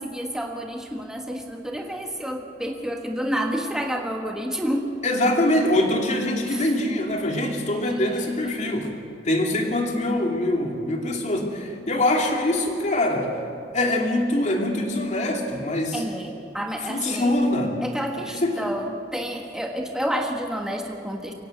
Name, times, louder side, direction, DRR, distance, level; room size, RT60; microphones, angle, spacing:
voice 1, 0.0-5.0 6.5-6.7 15.9-17.3 17.8-21.3, equal, 5° right, 2 dB, 1.4 m, -29 dB
voice 2, 5.0-8.9 9.2-13.3 13.7-16.0 16.9-17.8 18.3-18.6, left 1 dB, 40° left, 2 dB, 2.8 m, -23 dB
24.0 x 16.5 x 7.8 m, 2.5 s
head